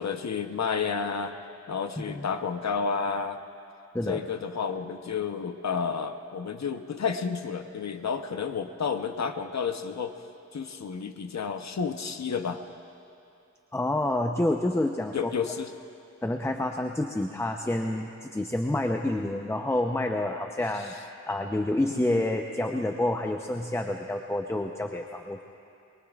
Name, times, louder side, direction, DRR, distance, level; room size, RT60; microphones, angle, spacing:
voice 1, 0.0-1.3 1.7-3.4 4.1-10.1 10.5-12.6 15.1-15.7 21.9-22.3, left 6 dB, 65° left, 7 dB, 0.9 m, -31 dB
voice 2, 13.7-15.3 16.2-25.4, left 1 dB, 10° left, 4 dB, 0.7 m, -28 dB
23.0 x 23.0 x 2.4 m, 2.7 s
wide cardioid pair, 70°, 29 cm